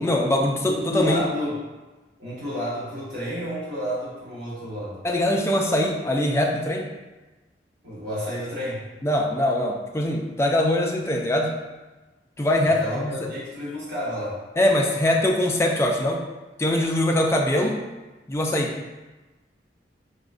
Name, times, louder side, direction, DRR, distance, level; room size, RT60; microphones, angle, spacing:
voice 1, 0.0-1.2 5.0-6.9 9.0-11.5 12.4-13.1 14.6-16.2 16.6-17.8 18.3-18.7, left 1 dB, 15° left, 0 dB, 0.3 m, -22 dB
voice 2, 0.6-1.6 2.2-5.0 7.8-8.8 12.6-14.4, equal, 75° right, -9 dB, 1.4 m, -30 dB
5.0 x 2.2 x 2.4 m, 1.2 s
head